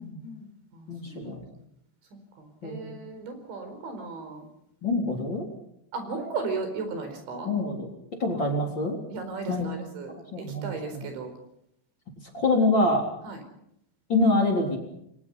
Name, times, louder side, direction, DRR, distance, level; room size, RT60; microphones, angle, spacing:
voice 1, 0.0-1.4 2.4-4.5 5.9-7.5 9.1-11.3 13.2-13.4, right 4 dB, 90° right, 7 dB, 6.9 m, -36 dB
voice 2, 0.9-1.4 2.6-3.0 4.8-5.5 7.4-7.9 8.2-9.0 9.5-9.7 10.3-11.1 12.2-13.1 14.1-14.8, left 2 dB, 25° left, 1 dB, 4.0 m, -25 dB
29.5 x 22.5 x 5.6 m, 0.75 s
omnidirectional pair, 5.1 m